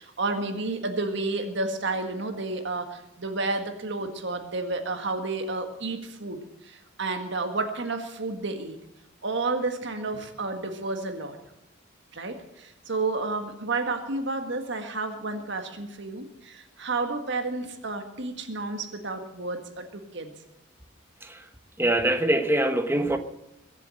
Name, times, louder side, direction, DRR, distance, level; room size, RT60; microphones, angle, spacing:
voice 1, 0.0-8.8 9.2-11.4 12.1-20.3, right 3 dB, 60° right, 1.7 m, -31 dB
voice 2, 21.8-23.2, right 1 dB, 10° right, 1.1 m, -23 dB
22.5 x 7.5 x 7.7 m
head